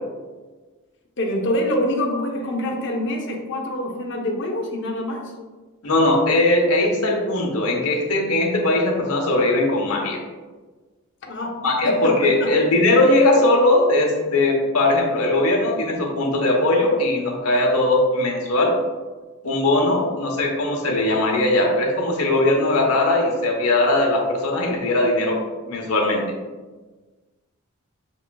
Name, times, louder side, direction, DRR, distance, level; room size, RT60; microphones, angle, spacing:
voice 1, 1.2-5.3 11.2-11.6 11.8-12.5, left 1 dB, 55° left, 1 dB, 0.7 m, -25 dB
voice 2, 5.8-10.2 11.6-18.8 19.4-25.4 25.6-26.2, left 2 dB, 85° left, 0 dB, 0.9 m, -19 dB
6.3 x 3.0 x 2.2 m, 1.3 s
head